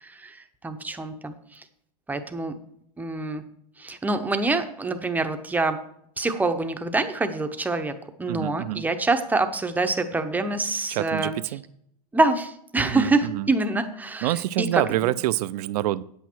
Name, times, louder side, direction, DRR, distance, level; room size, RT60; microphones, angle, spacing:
voice 1, 0.0-1.6 2.1-2.6 3.0-3.5 3.8-5.9 6.2-11.4 12.1-15.1, right 3 dB, 10° right, 0.7 m, -26 dB
voice 2, 8.3-8.8 10.9-11.6 12.8-13.5 14.2-16.0, right 15 dB, 70° right, 0.5 m, -26 dB
9.2 x 8.3 x 4.5 m
supercardioid pair, 140°, 20 cm